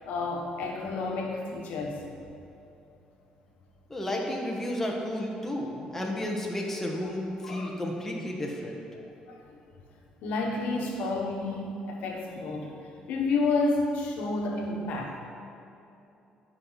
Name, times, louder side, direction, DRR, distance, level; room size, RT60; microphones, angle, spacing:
voice 1, 0.0-2.0 7.4-7.8 9.3-9.4 10.2-12.8 13.1-15.2, left 3 dB, 80° left, 0 dB, 1.3 m, -30 dB
voice 2, 3.9-8.8, left 1 dB, 10° left, -1 dB, 1.5 m, -32 dB
10.5 x 6.0 x 4.0 m, 2.7 s
cardioid pair, 100°, 3 cm